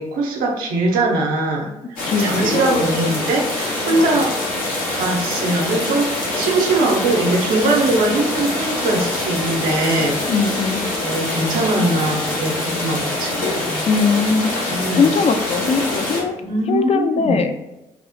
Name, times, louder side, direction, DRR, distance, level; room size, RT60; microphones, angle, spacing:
voice 1, 0.0-4.3 4.9-10.2 11.0-13.9 14.7-15.1 16.4-17.4, right 2 dB, 80° right, 0 dB, 0.6 m, -21 dB
sound 1, 2.0-16.2, left 2 dB, 80° left, 0.8 m, -24 dB
voice 2, 2.1-3.1 3.9-4.2 10.3-10.8 13.9-16.3 16.7-17.5, left 5 dB, 45° left, 6 dB, 0.4 m, -20 dB
2.9 x 2.0 x 2.6 m, 0.97 s
supercardioid pair, 55°, 15 cm